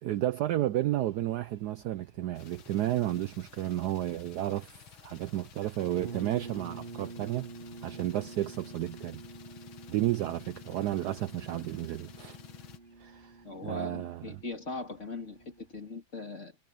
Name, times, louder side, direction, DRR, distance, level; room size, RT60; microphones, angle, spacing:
voice 1, 0.0-7.5 7.8-9.2 9.9-12.4 13.0-14.3, right 13 dB, 75° right, 0.9 m, -32 dB
sound 1, 1.0-15.9, right 1 dB, 20° right, 8.1 m, -66 dB
sound 2, 2.3-12.8, left 10 dB, 80° left, 2.3 m, -52 dB
sound 3, 6.0-15.7, right 4 dB, 50° right, 0.6 m, -48 dB
voice 2, 13.4-16.6, left 3 dB, 35° left, 2.9 m, -40 dB
omnidirectional pair, 2.2 m